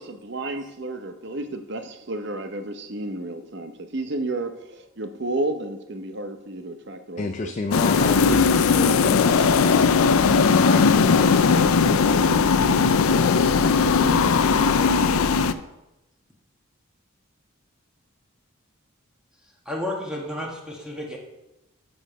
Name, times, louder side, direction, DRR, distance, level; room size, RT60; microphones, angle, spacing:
voice 1, 0.2-7.7, right 2 dB, 55° right, 0.8 m, -32 dB
voice 2, 7.2-9.8 10.6-11.0, left 3 dB, 35° left, 0.4 m, -31 dB
sound 1, 7.7-15.5, left 5 dB, 90° left, 0.5 m, -18 dB
voice 3, 19.6-21.2, left 1 dB, 5° right, 1.3 m, -31 dB
7.0 x 6.4 x 6.3 m
head